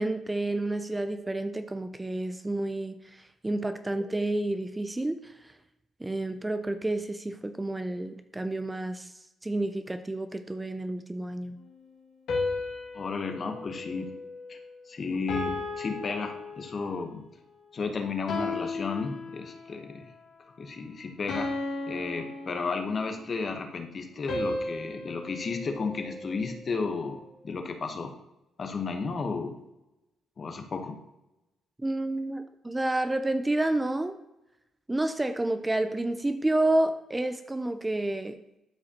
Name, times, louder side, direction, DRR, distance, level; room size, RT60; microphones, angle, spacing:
voice 1, 0.0-5.5 6.0-9.1 9.4-11.6 31.8-34.2 34.9-38.4, right 2 dB, 15° right, 9 dB, 0.4 m, -30 dB
sound 1, 12.3-14.8 15.3-17.0 18.3-19.8 21.3-23.2 24.3-26.6, left 2 dB, 75° left, 2.0 m, -35 dB
voice 2, 12.9-14.1 14.5-14.6 14.9-17.2 17.7-20.1 20.6-21.5 21.9-27.2 27.4-28.1 28.6-29.6 30.4-31.0, left 4 dB, 45° left, 5 dB, 1.0 m, -33 dB
12.5 x 4.9 x 2.9 m, 0.92 s
cardioid pair, 90°, 0 cm